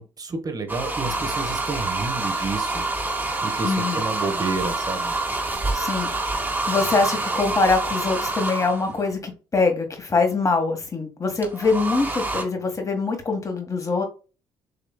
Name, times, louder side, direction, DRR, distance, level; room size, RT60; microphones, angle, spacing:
voice 1, 0.0-2.8 3.4-5.2, right 3 dB, 35° right, 1.4 m, -30 dB
sound 1, 0.7-9.0 11.4-12.4, right 2 dB, 20° right, 1.8 m, -27 dB
voice 2, 3.6-4.0 5.7-6.1 6.5-14.0, left 3 dB, 30° left, 1.9 m, -23 dB
6.7 x 3.1 x 2.4 m
supercardioid pair, 70°, 10 cm